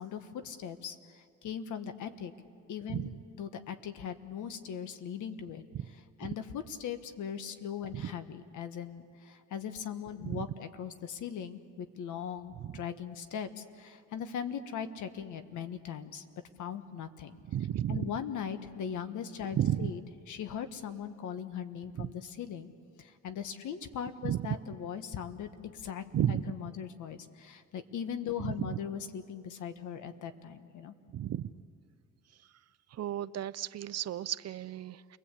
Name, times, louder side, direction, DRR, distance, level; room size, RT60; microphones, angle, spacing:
voice 1, 0.0-2.3 2.7-5.6 6.2-16.2 16.6-17.4 17.9-20.0 20.3-22.7 23.0-30.9, left 8 dB, 75° left, 9 dB, 1.5 m, -39 dB
voice 2, 17.5-18.1 19.5-19.9 22.0-22.1 24.2-24.4 26.1-26.5 28.4-28.7 31.1-31.5 32.9-35.2, right 11 dB, 55° right, 15 dB, 0.7 m, -33 dB
29.0 x 20.0 x 8.4 m, 2.2 s
cardioid pair, 90°, 30 cm